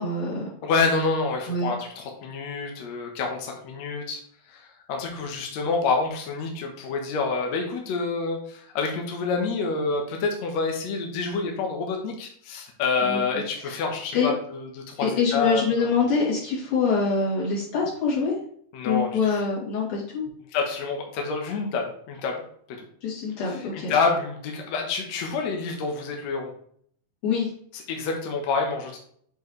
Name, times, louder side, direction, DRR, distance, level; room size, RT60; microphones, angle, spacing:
voice 1, 0.0-0.5 1.5-1.7 13.0-13.2 13.6-13.8 14.1-14.3 15.0-18.4 18.9-20.2 23.0-23.9 27.2-27.5, left 4 dB, 55° left, -6 dB, 3.7 m, -25 dB
voice 2, 0.6-4.2 4.5-15.9 18.7-19.4 20.5-22.4 22.7-22.9 23.4-26.5 27.7-29.0, left 4 dB, 75° left, 1 dB, 1.6 m, -28 dB
7.9 x 4.6 x 3.1 m, 0.63 s
omnidirectional pair, 4.6 m